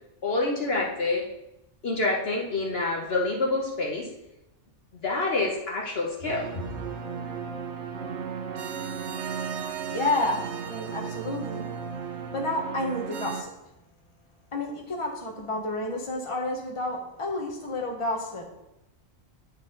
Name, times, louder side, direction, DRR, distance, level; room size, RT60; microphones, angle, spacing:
voice 1, 0.2-1.2 1.8-4.1 4.9-6.5, left 2 dB, 55° left, -2 dB, 1.1 m, -27 dB
sound 1, 6.2-13.4, right 7 dB, 65° right, 0.9 m, -35 dB
voice 2, 9.8-11.6 12.3-13.5 14.5-18.4, left 2 dB, 25° left, 0 dB, 1.1 m, -30 dB
10.0 x 4.0 x 3.8 m, 0.89 s
omnidirectional pair, 1.3 m